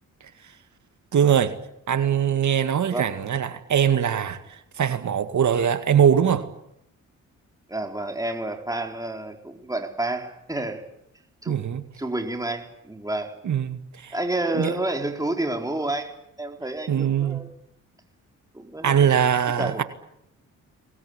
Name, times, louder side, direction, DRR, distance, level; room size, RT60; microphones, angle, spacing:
voice 1, 1.1-1.6 1.9-6.5 11.5-11.8 13.4-14.2 14.5-14.8 16.9-17.4 18.8-19.8, right 8 dB, 65° right, 2.0 m, -22 dB
voice 2, 7.7-10.9 11.4-11.6 12.0-13.3 14.1-16.1 16.4-17.5 18.5-19.0 19.6-19.8, right 2 dB, 10° right, 4.6 m, -29 dB
24.0 x 21.0 x 9.8 m
cardioid pair, 70°, 32 cm